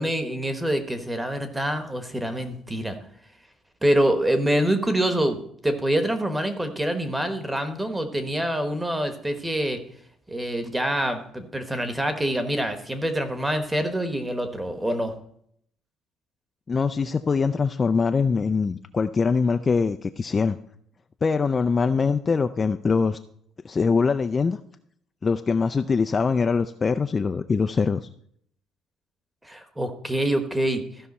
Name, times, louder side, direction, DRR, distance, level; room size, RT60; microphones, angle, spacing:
voice 1, 0.0-3.0 3.8-9.8 10.3-15.1 29.4-30.8, right 1 dB, 10° right, 8 dB, 1.0 m, -25 dB
voice 2, 16.7-20.6 21.2-23.2 23.6-24.6 25.2-28.0, left 5 dB, 25° left, 8 dB, 0.3 m, -23 dB
14.5 x 5.6 x 4.2 m, 0.67 s
cardioid pair, 145°, 0 cm